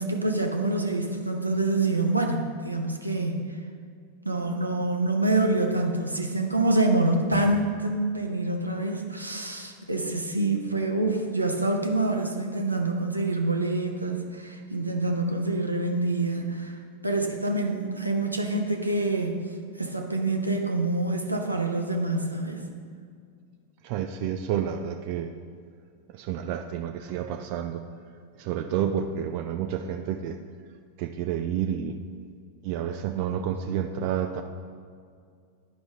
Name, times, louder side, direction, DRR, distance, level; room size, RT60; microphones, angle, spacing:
voice 1, 0.0-3.5 4.2-16.8 17.0-19.4 19.8-22.6, right 2 dB, 85° right, 2 dB, 0.7 m, -26 dB
voice 2, 23.8-25.3 26.1-27.8 28.4-30.4 31.0-32.0 32.6-34.4, right 9 dB, 45° right, 6 dB, 0.4 m, -29 dB
10.5 x 5.1 x 3.6 m, 2.2 s
figure-of-eight pair, 90°, 0 cm